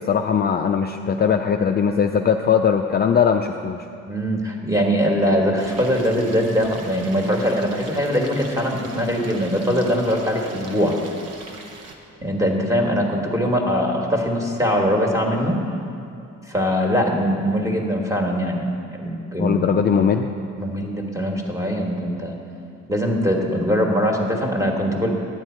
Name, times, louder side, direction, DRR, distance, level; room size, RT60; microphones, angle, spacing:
voice 1, 0.0-3.9 19.4-20.3, left 7 dB, 35° left, 4 dB, 0.4 m, -20 dB
voice 2, 4.1-11.0 12.2-15.6 16.5-19.8 20.6-22.3 22.9-25.1, equal, 10° right, 0 dB, 1.5 m, -22 dB
Stream, 5.6-11.9, right 3 dB, 55° right, 1.1 m, -41 dB
10.5 x 7.9 x 4.4 m, 2.5 s
cardioid pair, 90°, 30 cm